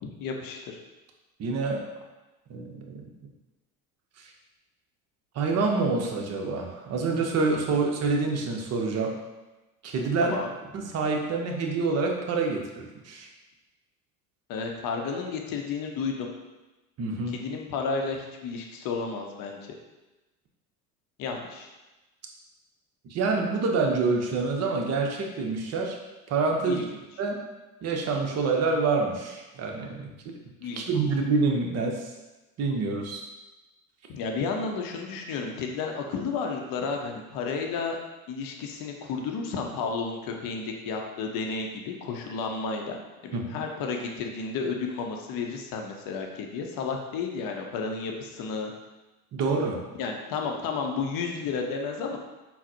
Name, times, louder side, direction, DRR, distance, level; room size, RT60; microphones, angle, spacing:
voice 1, 0.0-0.8 10.2-10.5 14.5-16.3 17.4-19.7 21.2-21.7 26.6-26.8 30.6-30.9 34.1-38.0 38.3-48.7 50.0-52.2, left 4 dB, 50° left, 2 dB, 0.6 m, -32 dB
voice 2, 1.4-1.8 2.5-3.1 5.3-9.2 9.8-10.4 10.7-13.3 17.0-17.4 23.0-26.0 26.3-26.8 27.2-27.4 27.8-30.1 30.7-32.1 32.6-33.2 43.3-43.6 49.3-49.8, right 4 dB, 35° right, 1 dB, 0.6 m, -27 dB
3.9 x 2.0 x 2.7 m, 1.1 s
hypercardioid pair, 75°, 45 cm